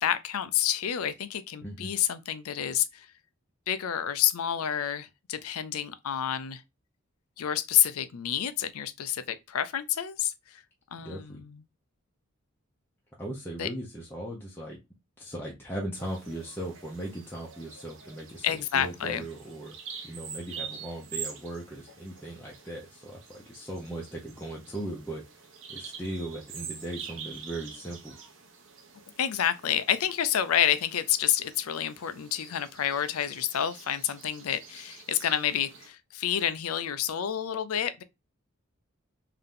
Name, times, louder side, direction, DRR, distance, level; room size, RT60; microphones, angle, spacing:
voice 1, 0.0-3.1 3.7-6.6 7.4-10.6 10.9-11.6 13.6-13.7 18.4-19.2 29.2-38.0, left 10 dB, 90° left, 0.5 m, -29 dB
voice 2, 1.6-1.9 11.0-11.4 13.2-14.8 15.2-18.5 18.7-19.7 20.0-25.2 25.7-28.2, right 1 dB, 10° left, 0.7 m, -38 dB
Bird vocalization bird call bird song, 15.9-35.9, right 7 dB, 65° right, 0.9 m, -46 dB
3.7 x 2.8 x 3.6 m
head